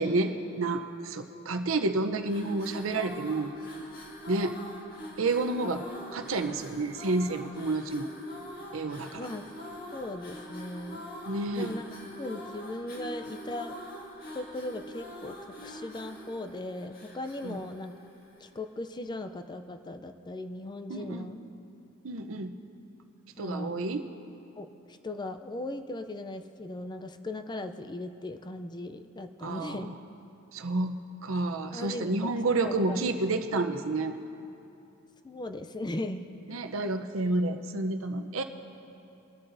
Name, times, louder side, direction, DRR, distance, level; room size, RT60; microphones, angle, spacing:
voice 1, 0.0-3.5 4.3-4.6 5.2-5.8 6.1-8.1 8.7-9.3 11.3-11.7 17.4-17.6 20.9-21.3 22.0-22.5 23.4-24.0 29.4-29.9 30.5-34.2 36.5-38.4, right 2 dB, 70° right, 7 dB, 0.7 m, -30 dB
sound 1, 2.2-18.6, equal, 45° left, 1.9 m, -44 dB
voice 2, 9.2-9.5 9.9-11.1 11.5-11.8 12.2-13.8 14.3-15.3 15.6-17.9 18.4-21.4 23.4-23.8 24.6-30.0 31.7-32.3 32.6-33.1 35.2-36.2, left 1 dB, 20° left, 8 dB, 0.4 m, -38 dB
22.0 x 12.5 x 2.6 m, 2.7 s
head